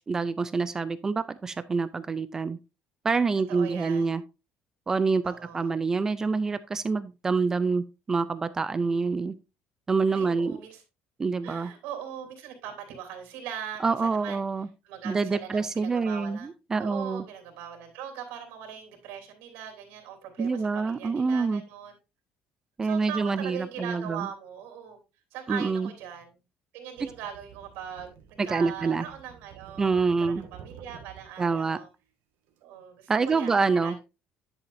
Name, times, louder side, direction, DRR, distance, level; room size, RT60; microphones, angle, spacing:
voice 1, 0.1-2.6 3.0-4.2 4.9-9.3 9.9-10.6 11.2-11.7 13.8-14.7 15.0-17.2 20.4-21.6 22.8-24.3 25.5-25.9 28.4-29.0 29.8-30.4 31.4-31.8 33.1-34.0, right 4 dB, 15° right, 0.3 m, -26 dB
voice 2, 3.5-4.1 5.2-5.7 10.1-10.8 11.4-14.4 14.8-16.5 16.8-21.9 22.8-25.0 25.3-26.4 26.7-31.9 32.6-34.0, right 9 dB, 80° right, 3.2 m, -40 dB
sound 1, 27.0-31.4 32.5-32.6, right 8 dB, 65° right, 1.5 m, -50 dB
10.5 x 7.1 x 2.6 m
cardioid pair, 180°, 4 cm